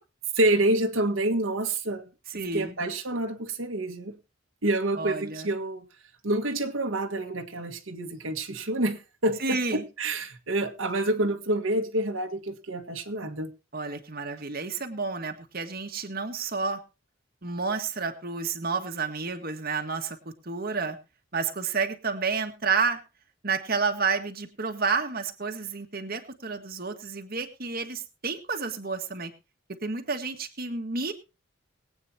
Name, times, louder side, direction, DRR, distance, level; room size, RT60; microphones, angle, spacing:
voice 1, 0.4-2.1 2.5-4.2 4.6-5.8 6.2-13.5, right 1 dB, 80° right, 1.7 m, -28 dB
voice 2, 2.3-2.8 5.0-5.5 9.4-9.8 13.7-16.8 17.4-20.2 20.4-21.0 21.3-23.0 23.4-29.3 29.7-31.1, right 4 dB, 45° right, 1.6 m, -30 dB
22.0 x 8.9 x 2.8 m
head